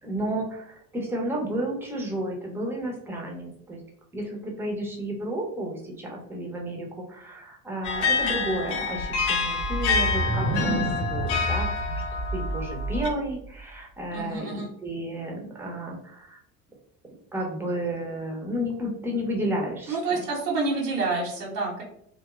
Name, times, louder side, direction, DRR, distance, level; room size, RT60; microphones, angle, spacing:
voice 1, 0.0-3.8 4.1-12.0 12.3-16.4 17.3-20.3, right 1 dB, 5° right, 0 dB, 0.4 m, -32 dB
sound 1, 7.8-13.1, left 4 dB, 65° left, 0.7 m, -27 dB
sound 2, 9.6-13.3, right 1 dB, 45° right, 0.6 m, -29 dB
voice 2, 14.1-14.7 19.9-21.8, right 3 dB, 85° right, -4 dB, 0.8 m, -28 dB
2.7 x 2.1 x 2.2 m, 0.71 s
figure-of-eight pair, 65°, 47 cm